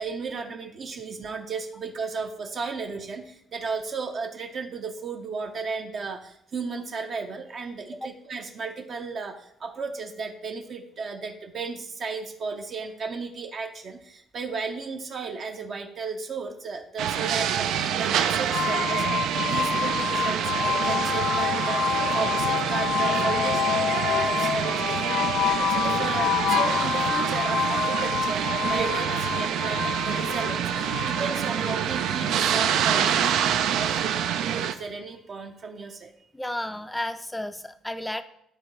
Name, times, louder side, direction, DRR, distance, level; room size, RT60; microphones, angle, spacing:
voice 1, 0.0-33.4 33.6-34.2 34.7-36.1, right 4 dB, 40° right, 4 dB, 0.7 m, -34 dB
sound 1, 17.0-34.7, right 9 dB, 75° right, 0.5 m, -26 dB
sound 2, 18.5-33.4, left 8 dB, 65° left, 0.5 m, -28 dB
voice 2, 36.3-38.2, left 1 dB, 5° left, 9 dB, 0.4 m, -32 dB
12.5 x 4.4 x 3.2 m, 0.73 s
cardioid pair, 155°, 0 cm